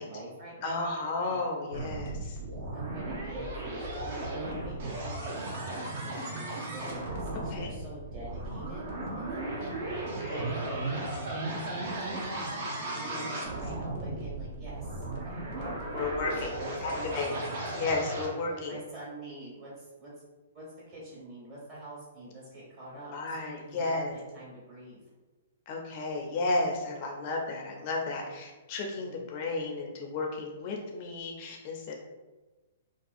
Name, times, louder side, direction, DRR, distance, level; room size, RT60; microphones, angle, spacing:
voice 1, 0.0-0.9 1.3-1.4 2.7-8.9 9.1-17.5 18.2-20.1 20.5-25.0 29.0-29.2, right 1 dB, 35° right, -7 dB, 1.4 m, -46 dB
voice 2, 0.6-2.4 7.5-7.7 10.2-10.4 13.1-13.3 15.9-16.5 16.8-17.3 17.7-18.8 23.1-24.1 25.7-32.0, left 3 dB, 45° left, 1 dB, 0.4 m, -33 dB
sound 1, 1.7-18.3, right 2 dB, 55° right, 0.7 m, -36 dB
2.5 x 2.3 x 2.4 m, 1.2 s
hypercardioid pair, 130°, 0 cm